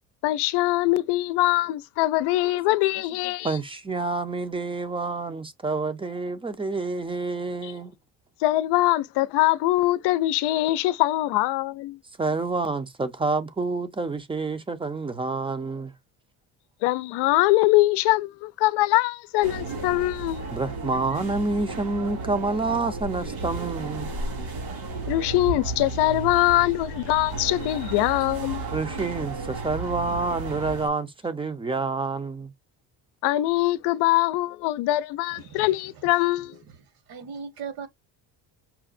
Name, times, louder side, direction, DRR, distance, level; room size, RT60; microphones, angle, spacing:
voice 1, 0.2-3.6 7.6-7.7 8.4-12.0 16.8-20.5 25.1-28.6 33.2-36.6, left 17 dB, 85° left, 0.5 m, -23 dB
voice 2, 3.4-7.9 12.2-15.9 20.5-24.1 28.7-32.5, right 3 dB, 15° right, 0.5 m, -28 dB
sound 1, 19.4-30.9, right 3 dB, 80° right, 2.4 m, -33 dB
voice 3, 35.3-35.8 36.7-36.8 37.1-37.9, right 6 dB, 60° right, 1.2 m, -38 dB
5.7 x 2.1 x 2.4 m
cardioid pair, 140°, 40 cm